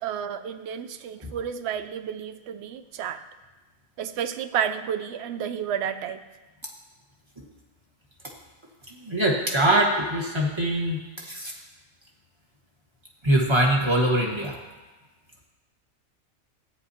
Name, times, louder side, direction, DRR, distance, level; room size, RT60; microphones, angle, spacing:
voice 1, 0.0-3.2 4.0-6.2, right 8 dB, 65° right, 9 dB, 0.7 m, -31 dB
voice 2, 8.9-11.5 13.2-14.6, right 1 dB, 20° right, -2 dB, 1.4 m, -23 dB
13.5 x 9.0 x 2.8 m, 1.2 s
omnidirectional pair, 1.4 m